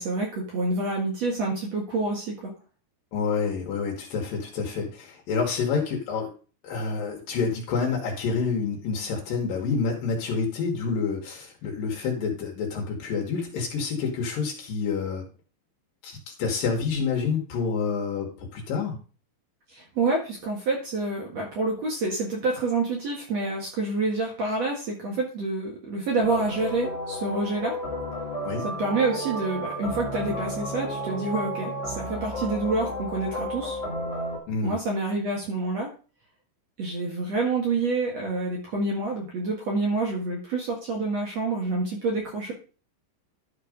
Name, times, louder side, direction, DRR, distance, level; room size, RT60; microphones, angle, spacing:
voice 1, 0.0-2.5 19.7-27.8 28.6-33.8 34.6-35.9 36.8-42.5, right 3 dB, 55° right, -1 dB, 2.3 m, -28 dB
voice 2, 3.1-6.3 6.6-15.2 16.0-19.0 28.4-28.6 34.5-34.8, left 5 dB, 70° left, 0 dB, 3.2 m, -28 dB
sound 1, 26.2-34.4, equal, 30° left, 1.3 m, -32 dB
12.0 x 4.4 x 5.1 m, 0.37 s
omnidirectional pair, 4.2 m